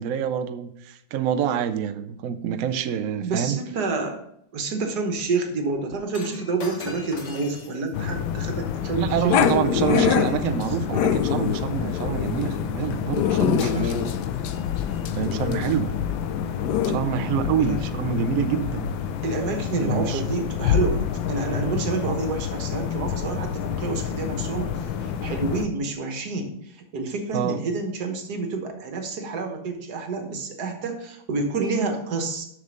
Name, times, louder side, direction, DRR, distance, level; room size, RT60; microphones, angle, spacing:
voice 1, 0.0-3.6 8.9-13.9 15.1-15.9 16.8-18.9 19.8-20.2 23.3-23.4 27.3-27.6, right 9 dB, 80° right, 8 dB, 0.7 m, -26 dB
voice 2, 3.2-4.2 4.5-10.6 17.6-17.8 19.2-32.5, right 3 dB, 60° right, 5 dB, 1.6 m, -29 dB
Shatter, 6.1-10.5 13.1-13.3 13.6-15.1 15.8-16.0, left 3 dB, 45° left, 1.3 m, -42 dB
sound 1, 7.9-25.7, left 8 dB, 85° left, 1.5 m, -29 dB
Growling, 9.3-17.0, left 8 dB, 70° left, 1.1 m, -25 dB
6.8 x 6.5 x 5.1 m, 0.74 s
omnidirectional pair, 2.1 m